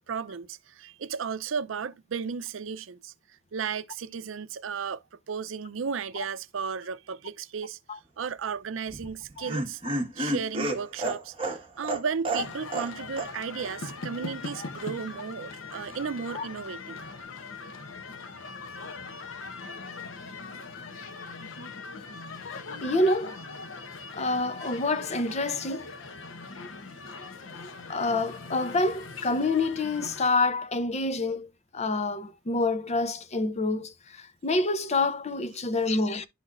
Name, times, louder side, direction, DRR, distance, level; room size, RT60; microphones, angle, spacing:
voice 1, 0.1-3.1 3.5-5.0 5.3-7.8 8.2-9.8 10.2-17.0, right 6 dB, 80° right, 0.5 m, -34 dB
Laughter, 8.9-12.9 13.2-13.3 13.6-13.7, right 2 dB, 30° right, 1.7 m, -30 dB
sound 1, 12.3-30.3, left 4 dB, 90° left, 0.9 m, -41 dB
voice 2, 22.8-23.4 24.1-25.9 27.9-36.3, left 2 dB, 35° left, 0.6 m, -27 dB
11.5 x 4.1 x 2.4 m
head